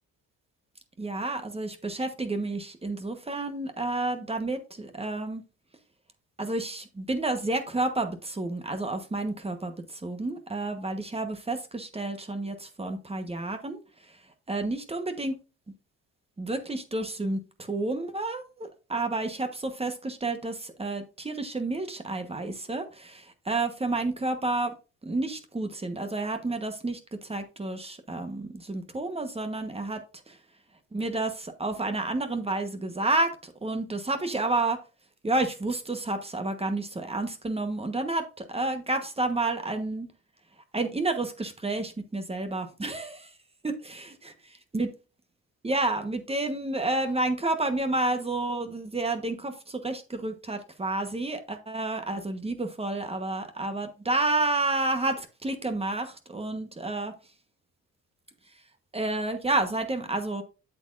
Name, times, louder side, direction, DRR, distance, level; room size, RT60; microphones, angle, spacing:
voice 1, 1.0-5.4 6.4-13.8 14.1-14.2 14.5-15.4 16.4-24.7 25.0-30.0 30.3-30.4 30.9-34.8 35.2-40.1 40.7-43.3 43.6-44.1 44.7-44.9 45.6-57.1 58.9-60.4, right 2 dB, 20° right, 7 dB, 1.2 m, -30 dB
8.0 x 7.4 x 2.6 m, 0.32 s
cardioid pair, 90°, 30 cm